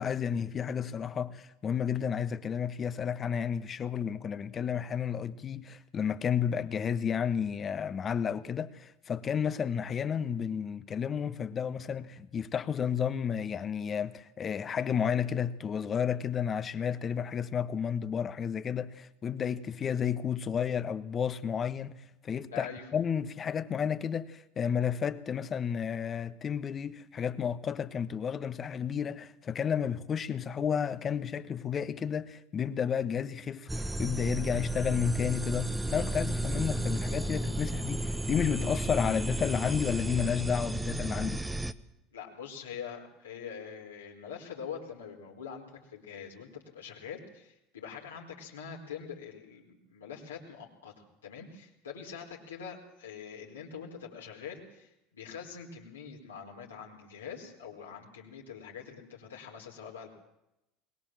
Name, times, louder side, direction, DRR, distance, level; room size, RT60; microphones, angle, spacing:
voice 1, 0.0-22.0 22.2-33.7 34.0-41.4, left 7 dB, 35° left, 1.4 m, -32 dB
voice 2, 22.5-22.9 42.1-60.1, left 7 dB, 80° left, 4.3 m, -44 dB
sound 1, 33.7-41.7, right 1 dB, 10° right, 1.3 m, -33 dB
22.5 x 20.5 x 7.6 m
figure-of-eight pair, 70°, 0 cm